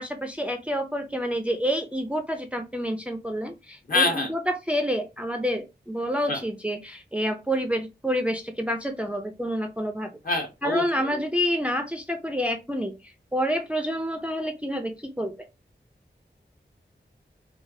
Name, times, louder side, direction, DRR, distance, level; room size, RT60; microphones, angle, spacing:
voice 1, 0.0-10.1 10.6-12.9 13.3-15.3, equal, 5° right, 5 dB, 0.5 m, -28 dB
voice 2, 3.9-4.3 6.3-6.4 10.2-11.2, left 2 dB, 45° left, 3 dB, 1.2 m, -25 dB
4.9 x 2.0 x 2.7 m, 0.25 s
wide cardioid pair, 65°, 19 cm